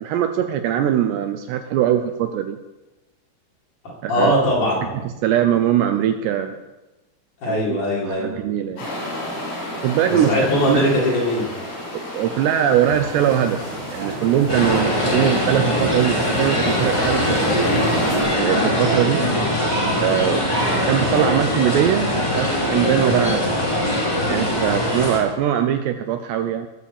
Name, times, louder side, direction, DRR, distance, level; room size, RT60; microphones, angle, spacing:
voice 1, 0.0-2.6 4.0-4.3 5.0-6.6 7.5-7.8 8.0-8.9 9.7-10.3 10.7-10.9 11.9-13.6 13.9-17.6 18.3-19.2 20.0-23.5 24.3-26.7, right 10 dB, 80° right, 7 dB, 2.6 m, -21 dB
voice 2, 4.1-4.8 7.4-8.3 10.0-11.5 15.1-15.3, left 1 dB, 45° left, -4 dB, 5.1 m, -20 dB
sound 1, 8.8-18.2, left 1 dB, 75° left, 8.8 m, -32 dB
sound 2, 12.9-18.4, right 3 dB, 45° right, 3.6 m, -32 dB
sound 3, 14.5-25.2, equal, 10° left, 2.3 m, -21 dB
20.0 x 6.9 x 7.2 m, 1.1 s
omnidirectional pair, 5.4 m